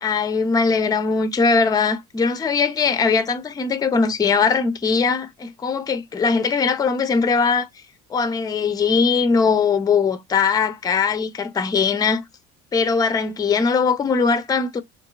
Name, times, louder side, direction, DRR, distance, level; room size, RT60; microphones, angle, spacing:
voice 1, 0.0-7.7 8.1-12.2 12.7-14.8, left 5 dB, 10° left, 0.4 m, -20 dB
2.7 x 2.4 x 2.3 m
hypercardioid pair, 65°, 35 cm